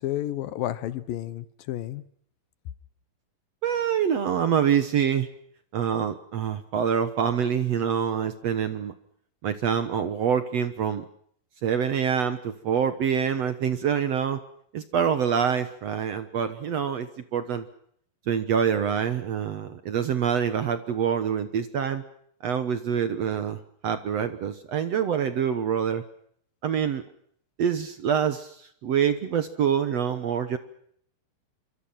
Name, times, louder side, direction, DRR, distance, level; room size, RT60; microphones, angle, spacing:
voice 1, 0.0-2.0, left 13 dB, 75° left, 15 dB, 2.8 m, -31 dB
voice 2, 3.6-5.3 5.7-8.9 9.4-11.0 11.6-14.4 14.7-17.7 18.3-22.0 22.4-26.0 26.6-27.0 27.6-30.6, right 8 dB, 60° right, 11 dB, 1.9 m, -26 dB
27.0 x 24.5 x 5.8 m, 0.66 s
omnidirectional pair, 4.2 m